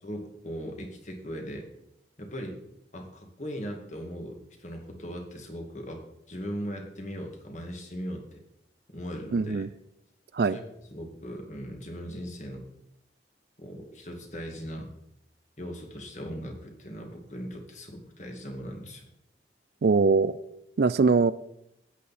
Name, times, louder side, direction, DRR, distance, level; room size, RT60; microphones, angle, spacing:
voice 1, 0.0-1.7 2.2-2.6 2.9-8.4 8.9-9.6 10.5-10.6 10.9-12.7 13.6-14.9 15.6-19.1, equal, 40° left, 2 dB, 2.2 m, -39 dB
voice 2, 9.3-9.7 10.3-10.6 19.8-20.3 20.8-21.3, right 4 dB, 60° right, 16 dB, 0.4 m, -22 dB
13.5 x 9.2 x 4.3 m, 0.81 s
head